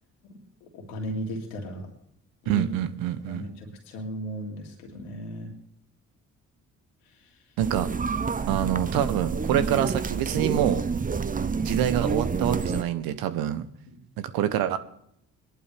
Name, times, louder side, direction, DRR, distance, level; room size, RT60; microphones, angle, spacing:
voice 1, 0.7-1.9 2.4-2.6 3.3-5.5 13.9-14.0, equal, 80° left, 2 dB, 2.7 m, -36 dB
voice 2, 2.5-3.5 7.6-7.9 8.5-10.8 11.6-13.7 14.2-14.8, right 11 dB, 65° right, 12 dB, 1.1 m, -26 dB
sound 1, 7.6-12.8, right 5 dB, 20° right, 0.8 m, -28 dB
21.5 x 11.0 x 3.5 m, 0.72 s
hypercardioid pair, 45°, 38 cm